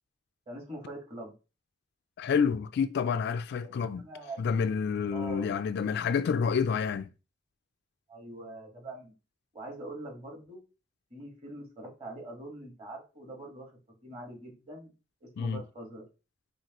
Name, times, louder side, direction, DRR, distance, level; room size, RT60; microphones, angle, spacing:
voice 1, 0.5-1.3 3.6-3.7 4.0-4.4 5.1-5.6 8.1-9.1 9.5-10.6 11.1-13.7 14.0-14.9 15.2-16.0, right 1 dB, 30° right, 1.4 m, -43 dB
voice 2, 2.2-4.1 4.4-7.1 15.4-15.6, left 6 dB, 55° left, 0.3 m, -28 dB
4.5 x 2.8 x 2.9 m
head